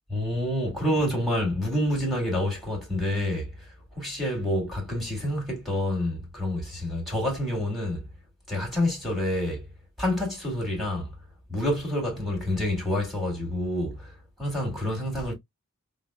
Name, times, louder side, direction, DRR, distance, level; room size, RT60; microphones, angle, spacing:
voice 1, 0.1-8.1 8.5-9.7 10.0-11.1 11.5-15.3, left 1 dB, ahead, 1.8 m, -28 dB
5.5 x 2.0 x 2.2 m
head